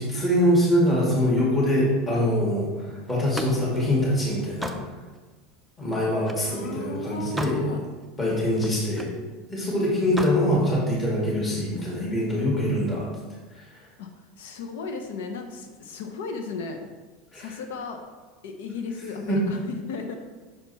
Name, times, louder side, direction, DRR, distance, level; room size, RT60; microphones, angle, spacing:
voice 1, 0.0-4.8 5.8-7.6 8.2-9.1 9.5-13.1 13.5-13.6 17.3-17.5 19.3-19.4, left 1 dB, 20° left, -6 dB, 2.1 m, -24 dB
Slam, 3.1-6.5 7.0-7.7 8.0-9.2 10.0-10.4, equal, ahead, 0.5 m, -36 dB
voice 2, 6.5-7.8 14.0-14.1 14.4-16.8 17.3-18.0 18.4-20.1, left 4 dB, 85° left, 5 dB, 0.7 m, -35 dB
6.7 x 4.5 x 4.1 m, 1.3 s
supercardioid pair, 130°, 0 cm